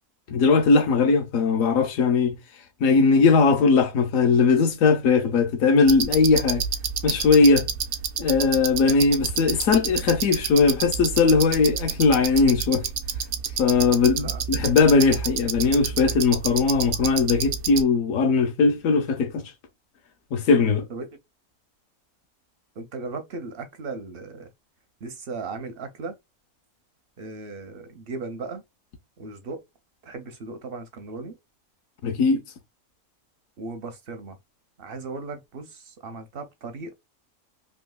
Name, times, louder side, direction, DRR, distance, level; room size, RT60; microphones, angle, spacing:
voice 1, 0.3-2.3 2.8-6.6 7.0-7.7 8.2-12.8 13.6-19.5 20.3-20.9 32.0-32.4, left 4 dB, 70° left, 1.0 m, -19 dB
sound 1, 5.9-17.8, right 7 dB, 80° right, 1.1 m, -29 dB
voice 2, 22.8-24.5 25.0-26.1 27.2-28.6 29.2-29.6 30.0-31.3 33.6-34.4 34.8-36.9, right 3 dB, 60° right, 0.6 m, -36 dB
3.8 x 2.7 x 2.2 m
omnidirectional pair, 1.6 m